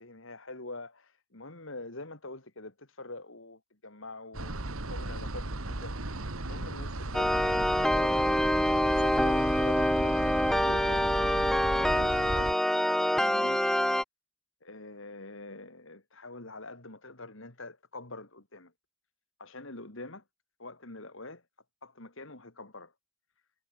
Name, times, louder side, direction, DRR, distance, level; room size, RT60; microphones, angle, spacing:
voice 1, 0.0-4.5 4.9-5.9 6.4-8.2 8.8-11.1 11.5-12.5 12.9-13.6 14.6-18.7 19.4-20.2 20.6-21.4 21.8-22.9, left 2 dB, 60° left, 2.9 m, -45 dB
sound 1, 4.3-12.5, right 2 dB, 70° right, 2.3 m, -36 dB
sound 2, 7.1-14.0, equal, ahead, 0.3 m, -26 dB
head